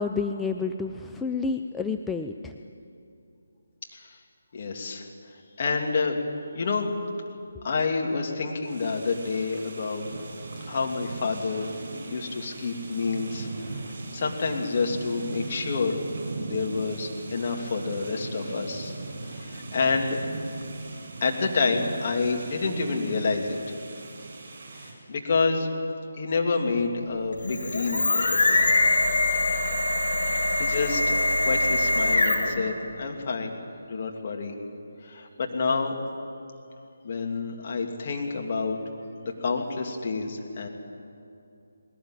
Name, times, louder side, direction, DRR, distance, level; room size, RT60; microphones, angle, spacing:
voice 1, 0.0-2.5, left 4 dB, 5° left, 3 dB, 0.5 m, -29 dB
voice 2, 4.5-5.0 5.6-6.2 6.5-6.9 7.6-10.1 10.7-11.7 12.1-16.0 16.4-18.9 19.3-20.2 21.2-23.6 24.7-25.7 26.2-28.6 30.2-33.6 33.9-34.5 35.0-36.0 37.0-38.8 39.4-40.7, left 4 dB, 40° left, 1 dB, 2.8 m, -28 dB
sound 1, 8.6-24.9, right 3 dB, 45° right, 6.8 m, -39 dB
sound 2, 27.3-32.6, left 2 dB, 60° left, 3.6 m, -23 dB
20.5 x 18.5 x 9.2 m, 2.6 s
figure-of-eight pair, 150°, 0 cm